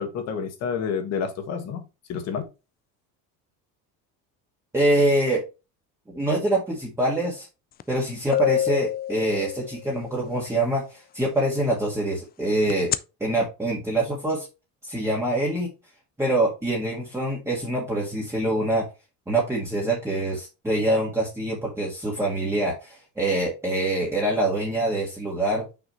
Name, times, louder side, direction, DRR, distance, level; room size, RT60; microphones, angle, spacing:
voice 1, 0.0-1.8 2.1-2.4, left 6 dB, 45° left, 1.8 m, -29 dB
voice 2, 4.7-5.4 6.1-7.5 7.9-12.9 13.2-14.5 14.8-15.7 16.2-18.9 19.3-25.6, right 1 dB, 5° right, 1.8 m, -25 dB
sound 1, 7.8-7.9 8.3-10.1 12.7-13.0, left 11 dB, 30° left, 0.3 m, -25 dB
6.0 x 6.0 x 3.1 m
cardioid pair, 160°, 36 cm